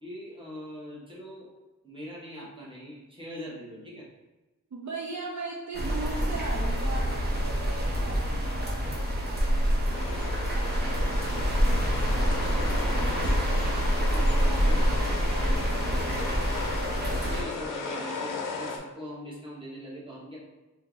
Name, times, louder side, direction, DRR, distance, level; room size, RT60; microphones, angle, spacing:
voice 1, 0.0-1.5 1.8-4.1 14.0-14.8 16.9-20.4, equal, 15° right, -6 dB, 1.1 m, -41 dB
voice 2, 4.7-12.8 13.4-16.3, right 3 dB, 60° right, -2 dB, 0.6 m, -41 dB
sound 1, 5.7-17.4, equal, 30° right, 0.7 m, -26 dB
sound 2, 9.9-18.8, left 4 dB, 80° left, 0.6 m, -36 dB
2.9 x 2.7 x 3.8 m, 1.1 s
wide cardioid pair, 125°, 32 cm